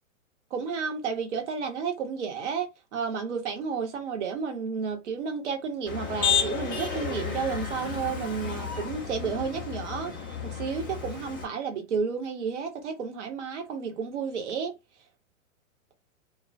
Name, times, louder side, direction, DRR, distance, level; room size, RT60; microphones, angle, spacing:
voice 1, 0.5-10.1 10.4-14.7, right 6 dB, 55° right, 0.9 m, -32 dB
Motor vehicle (road), 5.9-11.4, left 7 dB, 20° left, 0.3 m, -31 dB
2.2 x 2.1 x 2.6 m
figure-of-eight pair, 110°, 42 cm